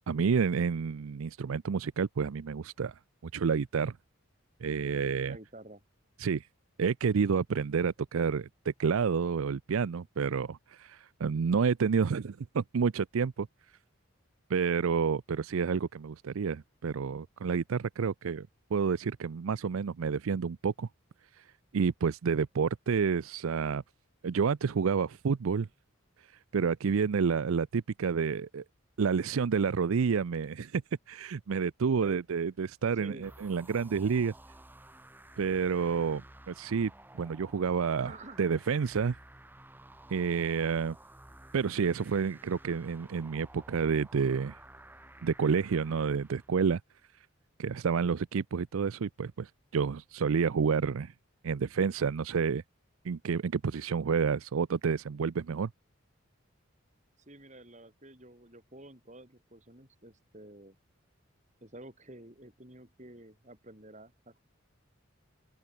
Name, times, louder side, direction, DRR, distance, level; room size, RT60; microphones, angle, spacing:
voice 1, 0.1-4.0 4.6-5.4 6.2-6.5 6.8-13.5 14.5-20.9 21.3-21.5 21.7-23.8 24.2-25.7 26.5-28.6 29.0-30.8 31.1-34.3 35.4-39.2 40.1-41.0 41.5-44.6 45.2-46.8 47.6-51.1 51.4-52.6 53.0-55.7, right 6 dB, 80° right, 0.5 m, -29 dB
voice 2, 5.3-5.8 32.0-32.2 33.0-33.3 38.0-38.4 57.3-60.8 61.6-64.4, right 1 dB, 35° right, 5.6 m, -50 dB
sound 1, 33.2-46.7, right 1 dB, 10° right, 4.3 m, -53 dB
open air
head